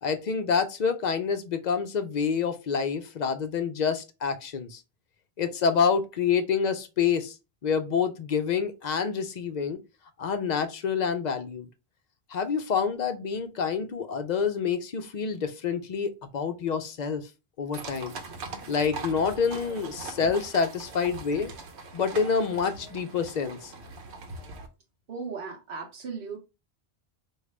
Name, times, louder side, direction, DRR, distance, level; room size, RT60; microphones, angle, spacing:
voice 1, 0.0-4.8 5.4-7.3 7.6-9.8 10.2-11.7 12.3-17.2 17.6-18.1 18.7-21.5 21.9-23.7, left 6 dB, 55° left, 0.5 m, -27 dB
sound 1, 17.7-24.7, right 3 dB, 90° right, 1.0 m, -41 dB
voice 2, 25.1-26.4, right 5 dB, 60° right, 0.9 m, -36 dB
4.9 x 2.4 x 3.1 m
omnidirectional pair, 1.1 m